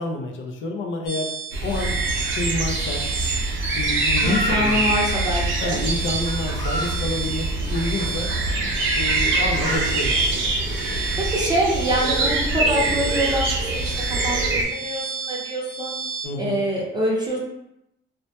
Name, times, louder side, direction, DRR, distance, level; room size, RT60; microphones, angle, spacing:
voice 1, 0.0-1.3 1.6-2.0 2.3-3.0 3.7-5.0 5.6-8.3 9.0-10.5 16.2-16.6, left 2 dB, 75° left, 2 dB, 0.5 m, -28 dB
sound 1, 1.1-16.3, right 5 dB, 45° left, 0.9 m, -33 dB
sound 2, 1.5-14.6, right 2 dB, 75° right, 0.5 m, -24 dB
Chicken rooster, 4.2-4.8 5.7-5.8 6.3-7.0 7.7-8.4 9.1-9.8, equal, 20° left, 0.9 m, -31 dB
voice 2, 4.2-5.8 11.2-13.9 14.2-16.0 16.4-17.4, equal, 20° right, -4 dB, 0.5 m, -25 dB
2.1 x 2.1 x 2.7 m, 0.84 s
cardioid pair, 90°, 20 cm